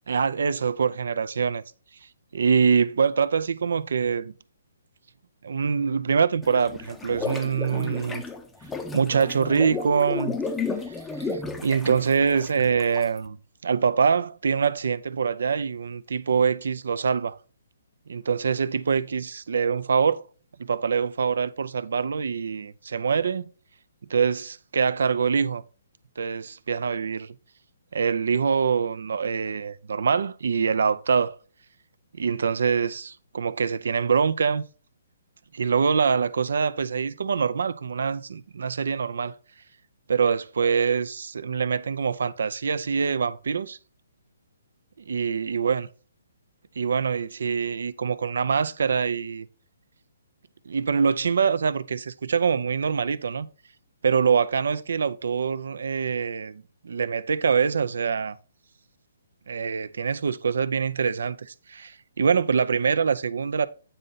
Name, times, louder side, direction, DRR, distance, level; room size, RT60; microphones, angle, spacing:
voice 1, 0.1-1.6 2.3-4.3 5.4-8.2 8.9-10.4 11.2-11.3 11.6-13.4 13.6-17.4 18.1-20.2 20.6-23.5 24.1-25.6 26.2-27.3 27.9-31.4 32.1-34.6 35.5-39.3 40.1-43.8 45.1-45.9 46.8-49.5 50.7-53.5 54.0-58.4 59.5-63.7, right 6 dB, 75° right, 0.5 m, -24 dB
sound 1, 6.4-13.2, left 4 dB, 5° left, 0.6 m, -33 dB
8.9 x 3.9 x 4.0 m
hypercardioid pair, 155°, 0 cm